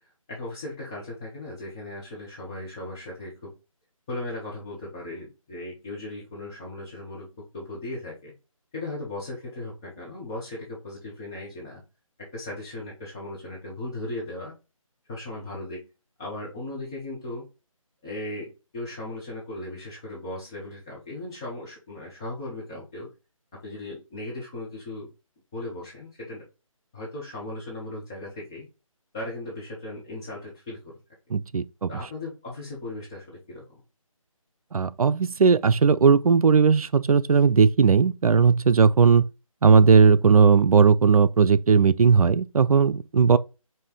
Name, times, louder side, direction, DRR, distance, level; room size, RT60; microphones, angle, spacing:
voice 1, 0.3-3.5 4.1-7.3 7.5-8.3 8.7-11.8 12.2-14.5 15.1-15.8 16.2-17.5 18.0-23.1 23.5-25.1 25.5-26.4 26.9-28.7 29.1-30.9 31.9-33.6, left 2 dB, 5° left, 0.4 m, -37 dB
voice 2, 31.3-31.9 34.7-39.2 39.6-43.4, right 5 dB, 85° right, 0.4 m, -18 dB
5.2 x 2.7 x 3.6 m
figure-of-eight pair, 160°, 18 cm